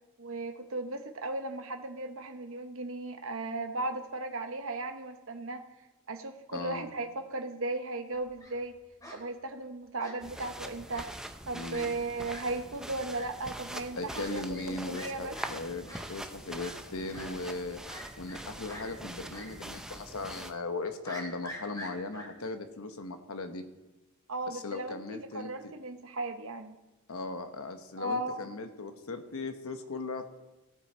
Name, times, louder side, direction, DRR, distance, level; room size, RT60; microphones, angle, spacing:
voice 1, 0.2-5.6 6.1-8.8 9.1-11.1 11.5-15.4 24.3-26.8 28.0-28.5, right 2 dB, 65° right, 6 dB, 0.9 m, -36 dB
voice 2, 6.5-6.9 11.5-11.9 13.9-17.8 18.2-23.6 24.5-25.5 27.1-30.2, left 3 dB, 75° left, 7 dB, 1.1 m, -38 dB
Fowl, 8.1-8.5 9.0-9.2 10.0-10.5 10.9-11.0 11.4-11.5 11.7-11.8 12.3-12.4 13.1-13.2 14.1-14.3 14.5-14.7 14.9-15.1 15.3-15.5 15.9-16.0 16.6-16.7 17.1-17.3 17.9-18.4 18.7-18.8 19.3-19.5 19.8-19.9 21.0-22.3, left 1 dB, 15° left, 3.4 m, -44 dB
sound 1, 10.2-20.5, right 1 dB, 5° right, 0.5 m, -43 dB
16.0 x 7.9 x 4.4 m, 1.0 s
head